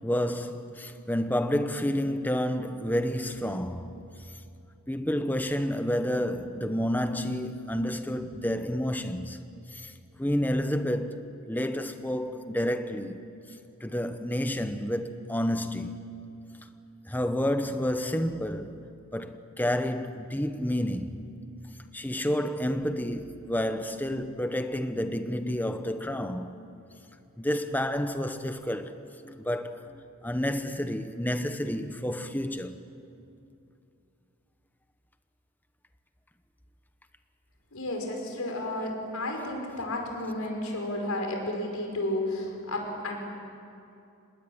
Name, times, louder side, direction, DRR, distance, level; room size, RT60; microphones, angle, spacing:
voice 1, 0.0-4.3 4.9-9.4 9.7-9.9 10.2-13.2 13.8-16.1 17.1-18.8 19.1-21.3 21.9-26.5 27.4-32.8, equal, 10° left, 1.0 m, -30 dB
voice 2, 37.7-43.2, left 1 dB, 85° left, 5.5 m, -32 dB
26.0 x 20.5 x 9.0 m
head